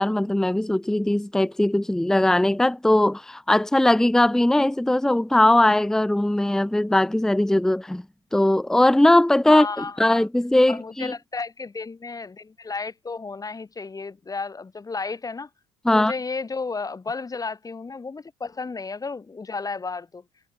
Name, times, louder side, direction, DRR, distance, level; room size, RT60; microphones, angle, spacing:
voice 1, 0.0-8.0 8.3-11.1 15.8-16.1, left 1 dB, 5° left, 0.8 m, -20 dB
voice 2, 9.5-10.3 10.7-15.5 15.9-20.2, left 4 dB, 25° left, 5.6 m, -33 dB
hypercardioid pair, 60°, 15 cm